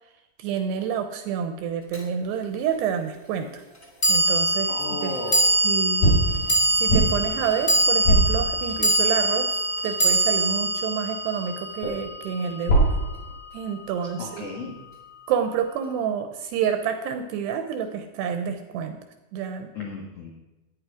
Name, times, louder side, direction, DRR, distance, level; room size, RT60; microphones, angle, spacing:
voice 1, 0.4-3.6 4.1-5.2 5.6-6.2 6.5-13.0 13.5-14.4 15.3-19.0 19.3-19.7, right 8 dB, 80° right, 7 dB, 2.6 m, -28 dB
sound 1, 1.9-2.0 4.0-12.4, right 1 dB, 20° left, 1.5 m, -23 dB
voice 2, 4.7-5.5 14.2-14.7 19.7-20.3, left 2 dB, 80° left, -1 dB, 1.3 m, -34 dB
sound 2, 4.7-5.4 6.0-9.2 11.8-13.3, right 1 dB, 60° left, 6.9 m, -24 dB
13.5 x 9.7 x 4.9 m, 1.0 s
omnidirectional pair, 5.5 m